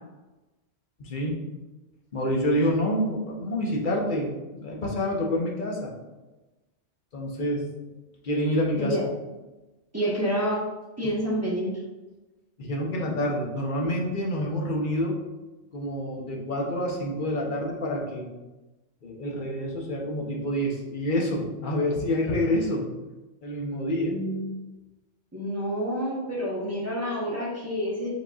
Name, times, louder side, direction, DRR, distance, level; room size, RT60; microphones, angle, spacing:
voice 1, 1.0-1.4 2.1-5.9 7.1-7.6 8.2-9.0 12.6-15.2 15.7-18.3 19.0-22.9 23.4-24.2, equal, 45° left, -1 dB, 0.9 m, -27 dB
voice 2, 9.9-10.6 11.0-11.8 24.1-24.5 25.3-28.1, equal, 15° right, -7 dB, 1.1 m, -28 dB
4.9 x 4.1 x 2.4 m, 1.1 s
omnidirectional pair, 1.2 m